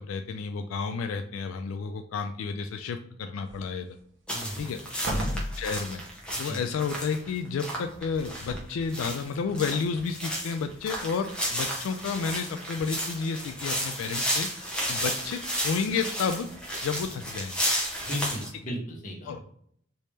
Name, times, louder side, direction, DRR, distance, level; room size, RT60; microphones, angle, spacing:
voice 1, 0.0-4.0 4.6-4.8 5.3-6.0 6.4-14.5 14.9-16.5 16.8-17.6 19.3-19.4, left 5 dB, 85° left, 8 dB, 0.3 m, -31 dB
sound 1, 3.5-4.0 4.4-4.5 5.0-6.0 8.1-9.0 9.7-9.8, equal, 60° right, 0.7 m, -35 dB
voice 2, 4.3-4.7 5.1-5.3 6.3-6.6 18.0-19.4, equal, 40° left, -1 dB, 0.9 m, -35 dB
sound 2, 4.3-18.5, equal, 5° left, 0.7 m, -32 dB
3.4 x 2.8 x 3.1 m, 0.65 s
head